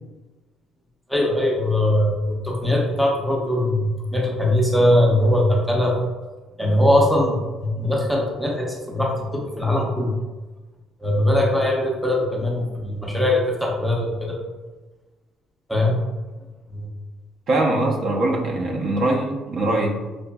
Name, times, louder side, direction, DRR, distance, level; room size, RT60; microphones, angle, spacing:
voice 1, 1.1-6.0 6.6-10.2 11.0-14.4 15.7-16.0 16.7-16.9, left 1 dB, ahead, -2 dB, 0.6 m, -21 dB
voice 2, 17.5-20.0, right 2 dB, 55° right, -1 dB, 0.6 m, -22 dB
5.0 x 2.4 x 2.2 m, 1.2 s
cardioid pair, 120°, 0 cm